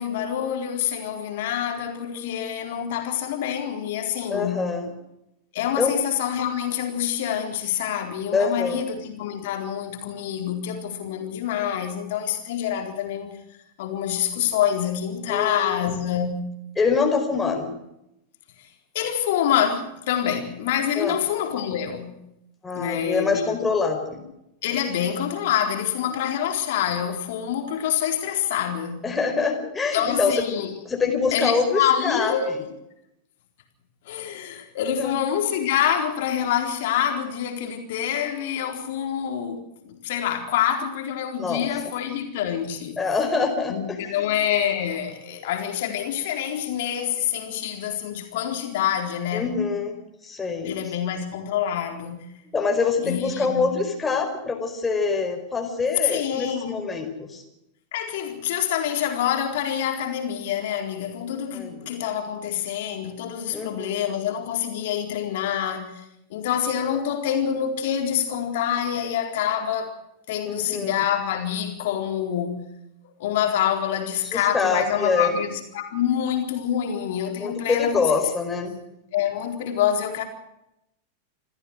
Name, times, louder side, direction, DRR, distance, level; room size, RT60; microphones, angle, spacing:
voice 1, 0.0-4.7 5.5-13.3 13.8-16.4 18.6-18.7 18.9-22.2 22.7-23.5 24.6-29.1 29.9-30.7 31.3-32.6 34.1-43.0 43.7-49.5 50.6-52.3 53.0-53.7 56.0-56.8 57.9-69.9 70.3-72.6 73.2-78.0 79.1-80.2, left 9 dB, 55° left, 4.1 m, -26 dB
voice 2, 4.3-4.9 5.8-6.0 8.3-8.8 15.3-16.0 16.8-17.8 21.0-21.2 22.6-24.2 29.0-30.3 30.8-32.6 34.9-35.2 41.4-41.7 43.0-44.0 44.2-44.4 49.3-50.0 50.2-50.8 52.5-57.4 61.5-61.9 63.5-63.9 70.4-71.0 74.3-75.3 77.4-78.8, left 4 dB, 15° left, 5.0 m, -25 dB
27.5 x 15.0 x 6.5 m
figure-of-eight pair, 90°, 0 cm